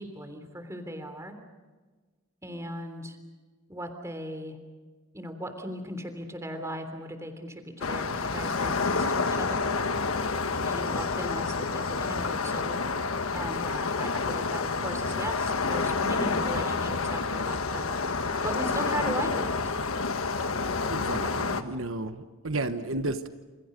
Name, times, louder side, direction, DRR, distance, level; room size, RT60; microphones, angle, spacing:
voice 1, 0.0-1.4 2.4-3.2 3.7-4.6 5.1-9.7 10.6-12.8 13.3-18.0 18.4-19.6, right 1 dB, 15° right, 6 dB, 3.3 m, -37 dB
sound 1, 7.8-21.6, left 4 dB, 80° left, 1.4 m, -29 dB
voice 2, 20.9-23.3, right 2 dB, 70° right, 9 dB, 1.2 m, -32 dB
29.5 x 27.5 x 5.3 m, 1.3 s
head